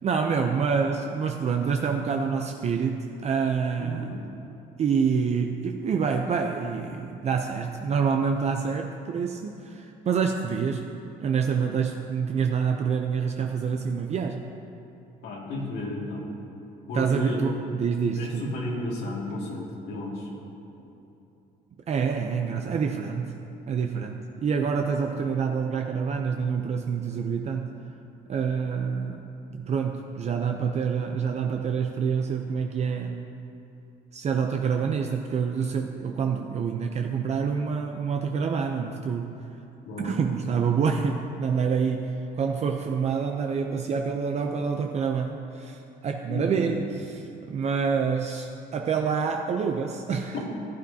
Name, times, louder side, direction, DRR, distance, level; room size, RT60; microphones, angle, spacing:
voice 1, 0.0-4.2 4.8-10.9 11.2-14.4 16.9-18.5 21.9-23.4 23.7-27.8 28.3-33.3 34.1-39.3 40.0-50.4, right 6 dB, 40° right, 3 dB, 0.6 m, -27 dB
voice 2, 3.8-4.2 15.2-16.2 16.9-17.4 18.2-20.3 39.9-40.2 46.3-46.7, left 1 dB, 80° left, -3 dB, 2.2 m, -33 dB
15.5 x 9.3 x 2.8 m, 2.9 s
cardioid pair, 110°, 17 cm